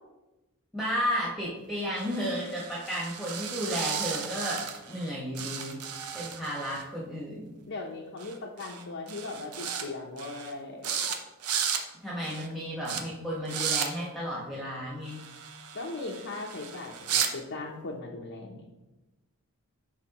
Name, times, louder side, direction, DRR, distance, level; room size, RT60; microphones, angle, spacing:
voice 1, 0.7-4.6 4.9-5.8 6.1-7.5 12.0-15.2, equal, ahead, -6 dB, 1.3 m, -33 dB
sound 1, 2.0-5.1 5.4-6.8 8.2-8.3 8.6-8.8 9.1-9.9 10.2-10.5 10.8-11.2 11.4-11.8 12.2-12.5 12.9-13.0 13.5-13.9 15.1-17.3, right 8 dB, 90° right, 0.7 m, -34 dB
voice 2, 7.7-11.0 15.7-18.7, left 3 dB, 55° left, -2 dB, 0.7 m, -38 dB
10.5 x 4.3 x 3.0 m, 1.0 s
head